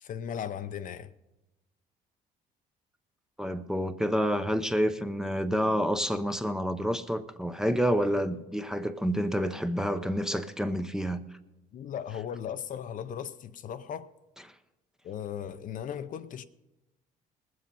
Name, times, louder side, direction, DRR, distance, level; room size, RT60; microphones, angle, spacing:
voice 1, 0.0-1.1 11.7-14.1 15.0-16.4, left 8 dB, 50° left, 0.6 m, -37 dB
voice 2, 3.4-11.3, equal, 5° right, 0.6 m, -28 dB
20.0 x 7.7 x 5.4 m
cardioid pair, 110°, 17 cm